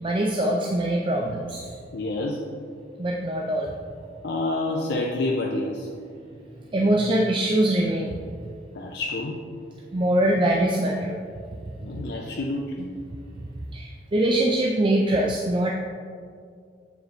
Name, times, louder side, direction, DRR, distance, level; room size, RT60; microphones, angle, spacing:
voice 1, 0.0-1.7 3.0-3.7 6.7-8.2 9.9-11.2 11.8-12.0 13.4-15.7, right 1 dB, 30° right, -1 dB, 0.4 m, -23 dB
voice 2, 1.9-2.5 4.2-5.9 8.7-9.5 11.8-12.9, left 2 dB, 65° left, -1 dB, 0.5 m, -28 dB
7.6 x 4.7 x 3.2 m, 2.2 s
head